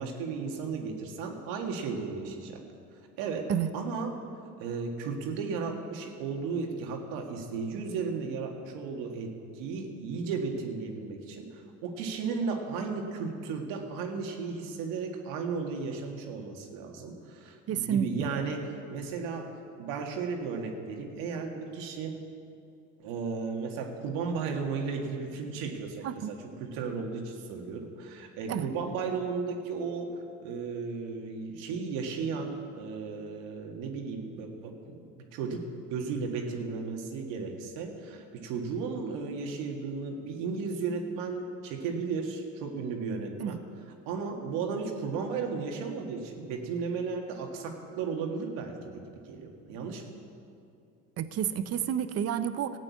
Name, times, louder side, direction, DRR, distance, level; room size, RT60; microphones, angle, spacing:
voice 1, 0.0-2.6 3.2-4.1 4.6-19.5 19.8-22.2 23.0-30.2 30.4-35.6 35.9-43.6 44.1-50.0, right 5 dB, 75° right, 2 dB, 2.0 m, -35 dB
voice 2, 17.7-18.3 26.0-26.3 28.5-28.7 43.4-43.6 51.2-52.7, right 9 dB, 45° right, 12 dB, 0.9 m, -30 dB
14.0 x 8.8 x 8.4 m, 2.5 s
supercardioid pair, 95°, 34 cm